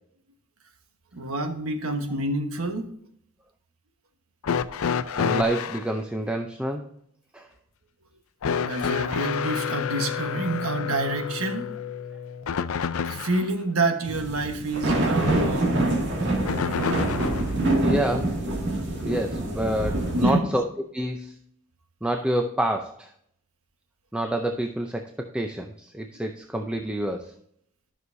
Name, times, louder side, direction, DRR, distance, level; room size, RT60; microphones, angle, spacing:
voice 1, 1.1-2.9 8.6-11.7 13.0-15.8 20.1-20.5, right 2 dB, 70° right, 6 dB, 1.2 m, -27 dB
sound 1, 4.4-5.9 8.4-13.5 16.5-17.5 18.7-18.8 19.9-20.0, left 6 dB, 65° left, 0.5 m, -29 dB
voice 2, 5.2-6.9 7.3-7.5 17.8-18.4 19.0-20.6 20.9-21.3 22.0-23.1 24.1-27.3, right 1 dB, 5° right, 3 dB, 0.5 m, -28 dB
sound 2, 14.0-20.3, right 2 dB, 55° right, 2.2 m, -25 dB
12.0 x 6.3 x 2.7 m, 0.70 s
head